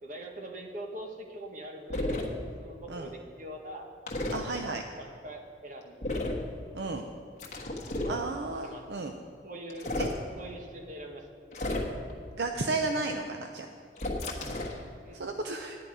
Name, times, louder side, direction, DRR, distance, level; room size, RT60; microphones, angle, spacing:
voice 1, 0.0-2.3 2.6-3.9 4.5-6.0 8.0-8.3 8.6-9.2 9.4-9.9 10.4-11.2 15.0-15.2, right 1 dB, 45° right, 2 dB, 1.3 m, -43 dB
sound 1, 1.9-2.3 4.1-4.4 6.0-6.4 7.4-8.2 9.7-10.2 11.5-12.1 14.0-14.8, left 1 dB, 40° left, 1.3 m, -32 dB
voice 2, 4.3-4.8 6.7-7.0 8.1-9.1 10.0-10.1 12.3-13.7 15.1-15.8, right 3 dB, 65° right, 4 dB, 0.6 m, -33 dB
10.5 x 10.0 x 4.8 m, 2.4 s
head